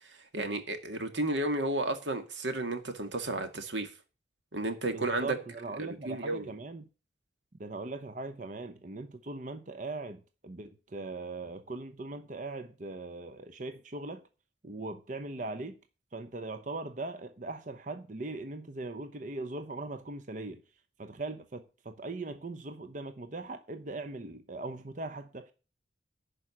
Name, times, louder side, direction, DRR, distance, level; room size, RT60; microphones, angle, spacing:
voice 1, 0.0-3.9 4.5-5.4 5.8-6.5, right 2 dB, 90° right, 2.0 m, -33 dB
voice 2, 4.9-6.9 7.6-14.2 14.6-15.8 16.1-20.6 21.0-25.5, right 2 dB, 45° right, 0.8 m, -40 dB
11.0 x 5.1 x 8.5 m
head